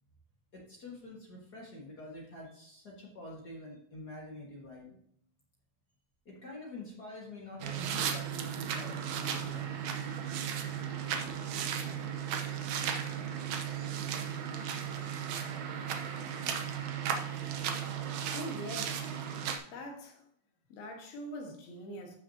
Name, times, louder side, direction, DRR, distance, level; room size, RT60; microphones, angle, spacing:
voice 1, 0.5-5.0 6.2-9.7, left 2 dB, 50° left, -3 dB, 1.2 m, -47 dB
sound 1, 7.6-19.6, right 8 dB, 75° right, 1.7 m, -35 dB
voice 2, 18.3-19.4 19.7-20.3 20.7-22.2, equal, 75° left, 2 dB, 3.3 m, -43 dB
14.0 x 6.0 x 2.8 m, 0.69 s
omnidirectional pair, 4.3 m